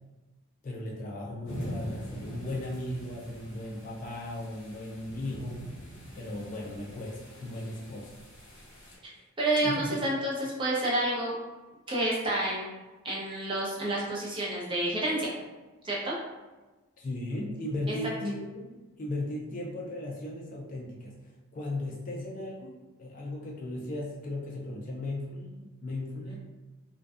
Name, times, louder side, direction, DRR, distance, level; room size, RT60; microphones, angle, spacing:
voice 1, 0.6-5.6 6.1-8.1 9.1-9.2 9.6-10.0 17.0-21.2 21.5-22.7 23.0-26.4, left 1 dB, 40° left, -2 dB, 0.3 m, -36 dB
sound 1, 1.5-9.0, equal, 60° left, 0.8 m, -44 dB
voice 2, 9.4-11.3 11.9-12.7 13.0-15.3 15.8-16.1 17.9-18.0, right 1 dB, 25° right, -5 dB, 0.5 m, -29 dB
2.5 x 2.2 x 2.3 m, 1.2 s
head